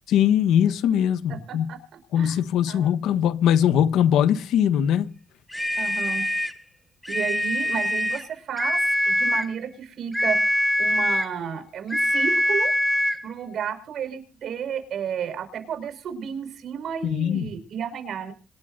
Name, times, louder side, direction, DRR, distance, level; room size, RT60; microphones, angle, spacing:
voice 1, 0.1-1.7 2.1-5.1 17.0-17.5, left 9 dB, 85° left, 1.3 m, -21 dB
voice 2, 2.7-3.0 5.8-6.2 7.1-8.8 9.1-12.7 13.2-18.3, right 8 dB, 65° right, 5.4 m, -32 dB
sound 1, 5.5-6.6 7.0-8.3 8.6-9.5 10.1-11.4 11.9-13.2, equal, 5° left, 1.5 m, -23 dB
26.0 x 12.0 x 2.7 m
cardioid pair, 90°, 0 cm